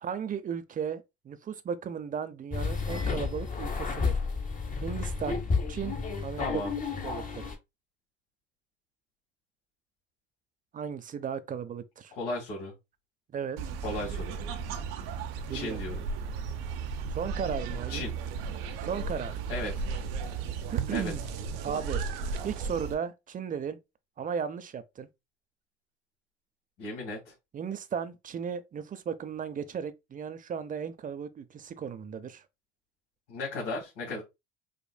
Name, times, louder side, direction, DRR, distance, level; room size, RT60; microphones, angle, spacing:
voice 1, 0.0-4.3 4.8-5.4 5.7-7.5 10.7-12.1 13.3-13.6 15.5-15.8 17.1-18.0 18.8-19.4 20.7-21.3 21.6-22.0 22.4-23.8 24.2-25.1 27.5-32.4, right 7 dB, 30° right, 0.6 m, -35 dB
sound 1, 2.5-7.5, left 4 dB, 25° left, 1.1 m, -31 dB
voice 2, 6.4-6.7 12.1-12.7 13.8-14.4 15.5-16.0 17.9-18.1 19.5-19.7 20.9-21.1 26.8-27.3 33.3-34.2, left 2 dB, 75° left, 1.9 m, -35 dB
sound 2, 13.6-22.9, right 5 dB, 75° right, 0.8 m, -35 dB
5.0 x 2.5 x 2.3 m
hypercardioid pair, 80°, 30 cm